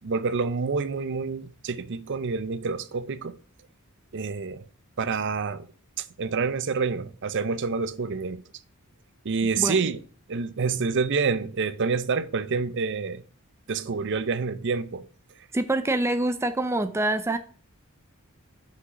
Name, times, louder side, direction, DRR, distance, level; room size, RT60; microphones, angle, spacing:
voice 1, 0.0-3.4 4.1-4.6 5.0-5.7 6.0-8.4 9.2-10.0 10.3-13.2 13.7-15.1, right 5 dB, 55° right, 0.6 m, -27 dB
voice 2, 15.5-17.4, right 2 dB, 10° right, 0.5 m, -25 dB
6.0 x 5.8 x 5.9 m
head